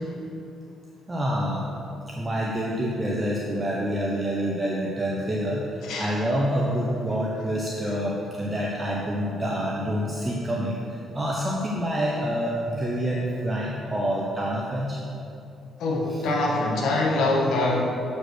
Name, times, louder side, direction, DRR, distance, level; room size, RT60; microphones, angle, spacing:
voice 1, 1.1-1.6 2.2-5.7 6.0-15.0 16.1-16.2, equal, 20° right, -4 dB, 1.1 m, -27 dB
voice 2, 5.8-6.1 15.8-17.8, left 2 dB, 80° left, -1 dB, 1.5 m, -24 dB
8.5 x 5.2 x 6.4 m, 2.7 s
cardioid pair, 90°, 0 cm